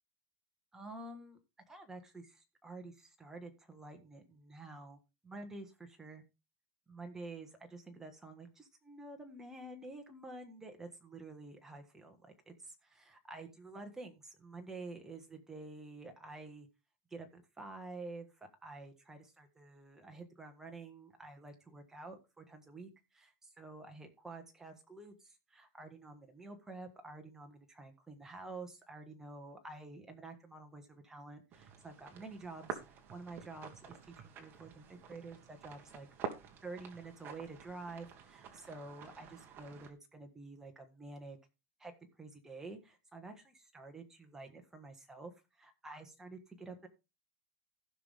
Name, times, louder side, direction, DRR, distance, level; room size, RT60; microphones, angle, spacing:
voice 1, 0.7-1.4 1.7-6.2 6.9-16.7 17.1-36.1 36.6-41.4 41.8-41.9 42.2-46.9, right 3 dB, 5° right, 3 dB, 1.5 m, -49 dB
sound 1, 31.5-39.9, right 7 dB, 25° right, 1.6 m, -49 dB
15.5 x 6.0 x 3.5 m, 0.28 s
supercardioid pair, 165°, 8 cm